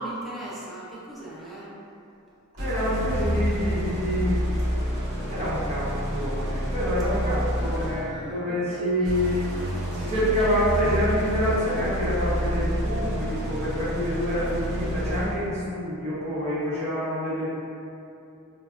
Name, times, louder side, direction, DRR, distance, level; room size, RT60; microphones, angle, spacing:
voice 1, 0.0-1.7 7.5-9.1, right 1 dB, ahead, -8 dB, 0.5 m, -38 dB
voice 2, 2.5-4.4 5.3-9.4 9.7-17.5, equal, 30° right, -10 dB, 0.9 m, -27 dB
sound 1, 2.6-8.2 9.0-15.4, equal, 65° right, 0.9 m, -28 dB
4.5 x 2.0 x 2.4 m, 2.7 s
head